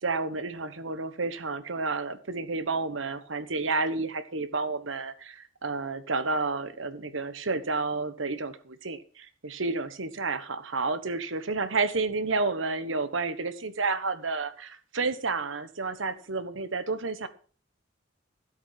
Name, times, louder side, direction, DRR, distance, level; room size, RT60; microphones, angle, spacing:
voice 1, 0.0-17.3, right 3 dB, 80° right, 1.3 m, -30 dB
13.5 x 8.1 x 5.9 m
head